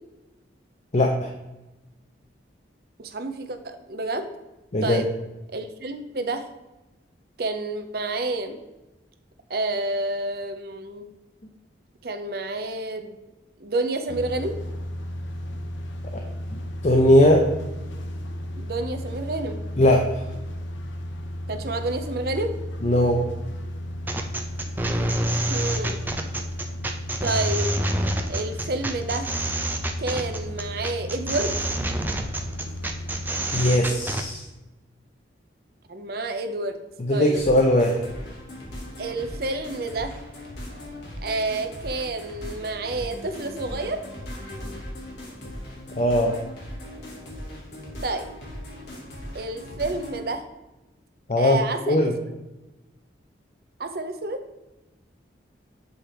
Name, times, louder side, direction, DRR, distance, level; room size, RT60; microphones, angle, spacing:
voice 1, 0.9-1.3 4.7-5.0 16.8-17.4 19.8-20.2 22.8-23.2 33.5-34.4 37.0-38.0 46.0-46.3 51.3-51.6 51.9-52.1, left 1 dB, 40° left, 1 dB, 0.6 m, -19 dB
voice 2, 3.0-4.3 4.8-5.1 5.5-6.4 7.4-8.6 9.5-11.1 12.0-13.2 13.6-14.6 18.6-19.6 21.5-22.5 25.5-26.0 27.2-27.8 28.3-29.3 30.0-31.6 35.9-36.8 37.1-37.4 39.0-40.1 41.2-44.0 48.0-48.3 49.3-50.4 51.4-52.1 53.8-54.4, right 2 dB, 55° right, 8 dB, 0.6 m, -29 dB
sound 1, 14.1-33.7, left 1 dB, 85° left, 0.7 m, -34 dB
sound 2, 24.1-34.3, right 1 dB, 10° right, 0.4 m, -27 dB
sound 3, 37.3-50.3, left 1 dB, 65° left, 1.7 m, -39 dB
7.8 x 3.3 x 4.3 m, 1.0 s
head